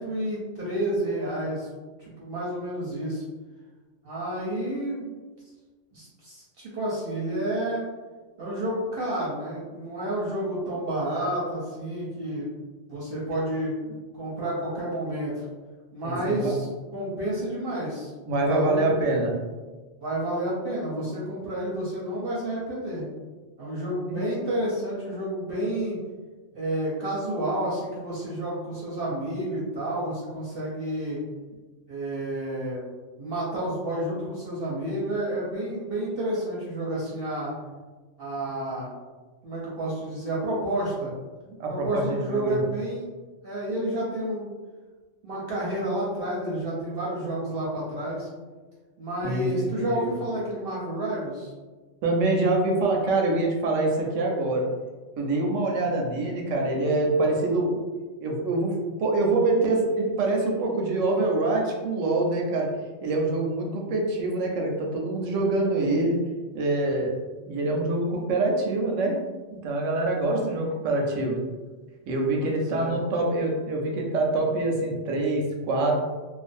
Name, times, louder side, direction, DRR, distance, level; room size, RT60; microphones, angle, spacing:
voice 1, 0.0-1.7 2.0-3.2 4.0-5.2 5.9-7.8 8.4-12.5 12.9-13.8 14.1-15.5 15.9-16.7 16.9-18.1 18.5-19.0 20.0-23.0 23.6-26.0 26.5-31.2 31.9-32.8 33.2-37.5 38.2-38.9 39.4-41.1 41.7-43.1 43.4-44.5 45.2-48.3 49.0-51.5 72.4-73.0, right 1 dB, 60° right, -6 dB, 0.7 m, -30 dB
voice 2, 16.0-16.5 18.3-19.3 24.1-24.2 41.6-42.6 49.2-50.1 52.0-54.6 55.2-57.8 58.2-62.7 63.0-66.2 66.5-67.2 67.5-69.2 69.6-71.4 72.1-75.9, right 2 dB, 85° right, 0 dB, 0.9 m, -25 dB
2.4 x 2.4 x 2.5 m, 1.3 s
omnidirectional pair, 1.3 m